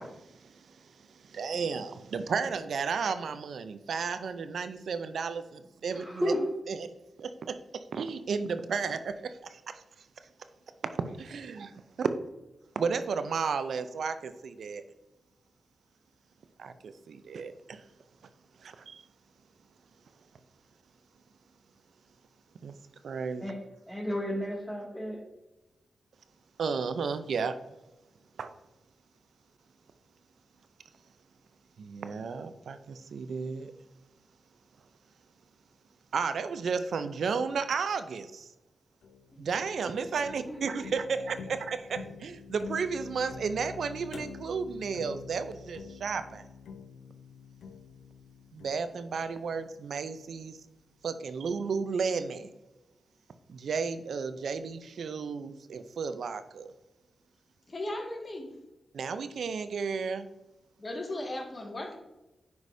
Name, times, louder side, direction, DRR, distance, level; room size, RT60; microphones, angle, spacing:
voice 1, 0.0-6.2 6.7-6.9 7.2-9.8 11.0-12.1 12.8-14.8 16.6-17.8 18.6-19.0 22.6-22.8 23.0-23.5 26.6-27.6 28.4-28.5 31.8-33.7 36.1-38.5 39.4-46.5 48.5-50.6 51.0-52.5 53.5-56.7 58.9-60.3, right 5 dB, 75° right, 11 dB, 0.5 m, -33 dB
voice 2, 5.9-6.4 23.4-23.5 23.9-25.2 40.5-40.8, equal, 10° left, -5 dB, 2.1 m, -33 dB
sound 1, 39.0-50.2, left 5 dB, 85° left, 0.6 m, -47 dB
voice 3, 57.7-58.6 60.8-62.0, left 1 dB, 40° left, 1 dB, 1.9 m, -36 dB
9.6 x 4.8 x 2.7 m, 1.0 s
supercardioid pair, 45°, 0 cm